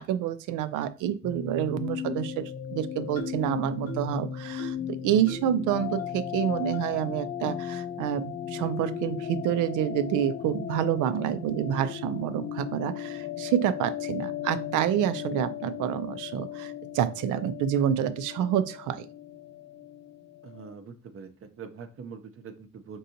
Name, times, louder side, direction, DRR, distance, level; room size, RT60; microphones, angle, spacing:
voice 1, 0.0-19.1, right 10 dB, 85° right, 13 dB, 0.5 m, -28 dB
sound 1, 1.2-20.7, left 9 dB, 40° left, 0.4 m, -36 dB
sound 2, 3.2-3.5 3.9-4.2 4.6-4.9 5.3-5.5 6.0-6.1 6.7-6.9 7.4-7.5 8.2-8.3 9.0-9.1, right 7 dB, 70° left, 1.4 m, -42 dB
voice 2, 20.4-23.0, right 6 dB, 45° right, 8 dB, 0.7 m, -43 dB
5.3 x 2.6 x 2.7 m, 0.34 s
cardioid pair, 90°, 30 cm